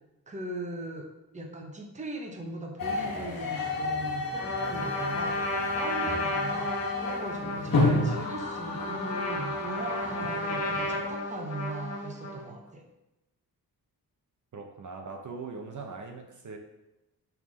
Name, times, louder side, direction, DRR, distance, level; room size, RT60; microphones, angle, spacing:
voice 1, 0.3-1.1 1.3-12.8, right 1 dB, 20° right, 2 dB, 1.0 m, -39 dB
sound 1, 2.8-11.2, left 2 dB, 65° left, 1.5 m, -31 dB
Trumpet, 4.4-12.5, left 1 dB, 40° left, 1.5 m, -33 dB
voice 2, 14.5-16.6, right 4 dB, 55° right, 3 dB, 0.9 m, -41 dB
5.6 x 4.6 x 6.2 m, 0.96 s
wide cardioid pair, 145°, 37 cm